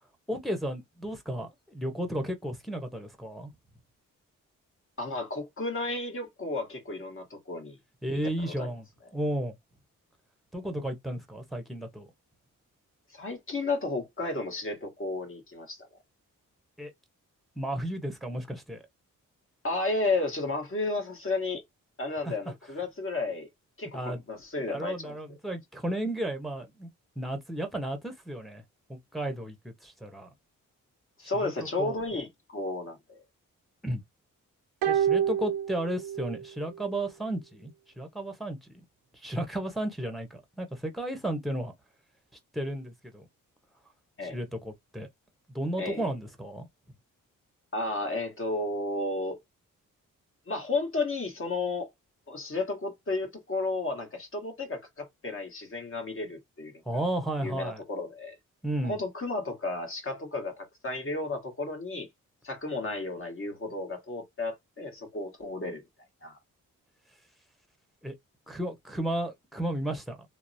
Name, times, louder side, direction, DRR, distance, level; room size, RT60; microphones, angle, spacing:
voice 1, 0.3-3.5 8.0-8.9 9.1-9.5 10.5-12.1 16.8-16.9 17.6-18.8 22.2-22.3 23.9-24.2 24.7-26.9 27.2-28.6 28.9-30.3 31.3-32.0 33.8-34.0 34.9-38.6 39.1-41.7 42.5-43.3 44.2-45.1 45.5-46.7 56.8-57.8 58.6-59.0 68.0-68.1 68.5-70.2, right 1 dB, ahead, 0.9 m, -33 dB
voice 2, 5.0-7.8 8.5-8.7 13.1-15.8 19.6-21.6 22.0-23.5 23.8-25.2 31.2-33.2 44.2-44.4 45.8-46.1 47.7-49.4 50.5-51.9 52.3-56.7 57.4-58.4 58.8-62.1 62.4-65.8 66.2-66.4, left 2 dB, 40° left, 1.3 m, -33 dB
sound 1, 34.8-36.5 36.7-36.8, right 9 dB, 85° right, 0.5 m, -28 dB
2.9 x 2.0 x 2.6 m
supercardioid pair, 50°, 34 cm